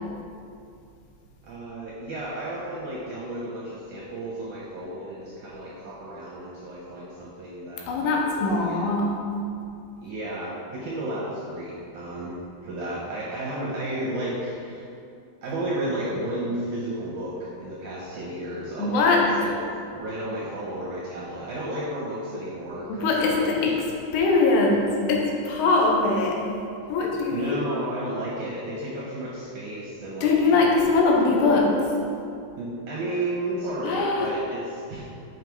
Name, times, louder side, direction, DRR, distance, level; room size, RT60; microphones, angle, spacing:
voice 1, 1.4-8.9 10.0-12.4 12.6-14.9 15.4-19.6 19.9-23.8 27.3-30.7 32.6-35.0, right 1 dB, 70° right, -6 dB, 1.9 m, -33 dB
voice 2, 7.9-9.1 18.8-19.2 22.9-23.7 24.1-24.8 25.1-26.4 26.9-27.6 30.2-31.7 33.8-34.3, left 3 dB, 85° left, -1 dB, 3.1 m, -21 dB
7.8 x 5.5 x 4.6 m, 2.5 s
omnidirectional pair, 4.8 m